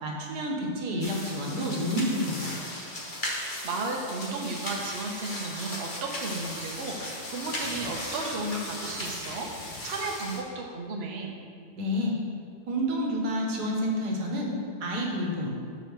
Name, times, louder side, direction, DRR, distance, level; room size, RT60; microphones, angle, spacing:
voice 1, 0.0-2.6 11.7-12.2 12.7-15.5, equal, 70° right, -1 dB, 1.6 m, -29 dB
sound 1, 1.0-10.4, left 1 dB, 35° left, 0.9 m, -37 dB
voice 2, 3.6-9.5 9.8-11.3, right 3 dB, 50° right, 0 dB, 0.8 m, -34 dB
7.2 x 4.1 x 6.1 m, 2.2 s
omnidirectional pair, 1.9 m